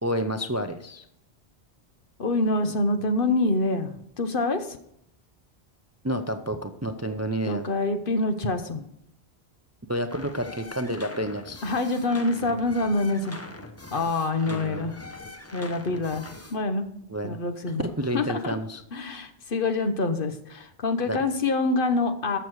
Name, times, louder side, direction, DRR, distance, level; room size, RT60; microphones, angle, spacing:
voice 1, 0.0-1.0 6.0-7.6 9.9-11.6 14.5-14.9 17.1-17.4 17.8-18.8 21.1-21.2, equal, 20° right, 8 dB, 0.5 m, -29 dB
voice 2, 2.2-4.8 7.5-8.8 11.6-13.4 13.9-15.0 15.5-16.9 17.2-17.8 18.1-18.5 18.9-22.4, left 2 dB, 55° left, 8 dB, 1.1 m, -26 dB
sound 1, 10.1-16.6, left 2 dB, 15° left, 0.7 m, -42 dB
14.0 x 6.8 x 4.7 m, 0.73 s
omnidirectional pair, 1.1 m